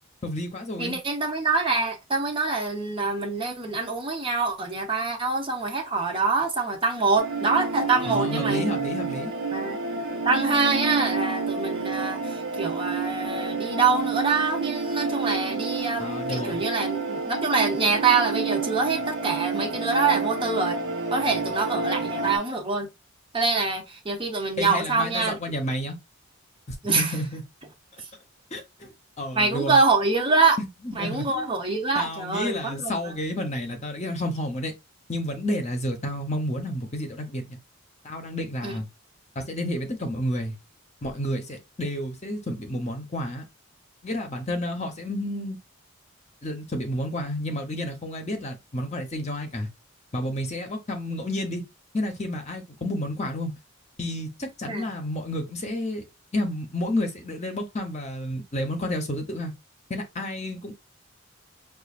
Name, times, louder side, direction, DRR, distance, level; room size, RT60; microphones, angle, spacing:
voice 1, 0.2-1.0 8.0-9.3 16.0-16.6 24.6-26.0 26.9-27.4 28.5-29.8 30.6-31.5 31.9-34.7 35.1-37.6 38.0-38.9 39.3-40.6 41.0-43.4 44.0-45.6 46.4-49.7 50.1-51.6 51.9-53.5 54.0-56.1 56.3-59.5 59.9-60.7, left 1 dB, 30° left, 0.8 m, -30 dB
voice 2, 0.8-8.6 9.5-20.8 21.1-22.9 23.3-25.4 26.8-27.2 28.0-28.1 29.3-30.6 31.0-33.1 38.6-38.8 54.7-54.9, right 4 dB, 25° right, 0.8 m, -25 dB
sound 1, 7.2-22.4, right 4 dB, 85° right, 1.1 m, -29 dB
6.0 x 2.5 x 2.5 m
head